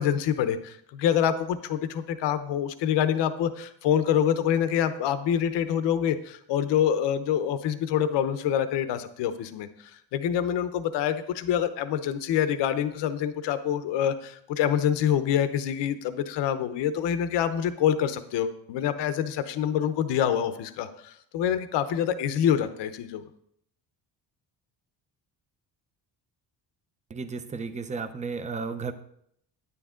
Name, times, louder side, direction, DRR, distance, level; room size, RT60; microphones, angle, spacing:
voice 1, 0.0-23.2, left 9 dB, 80° left, 11 dB, 0.9 m, -26 dB
voice 2, 27.1-28.9, right 4 dB, 15° right, 10 dB, 0.5 m, -33 dB
9.9 x 9.8 x 3.7 m, 0.69 s
cardioid pair, 155°, 42 cm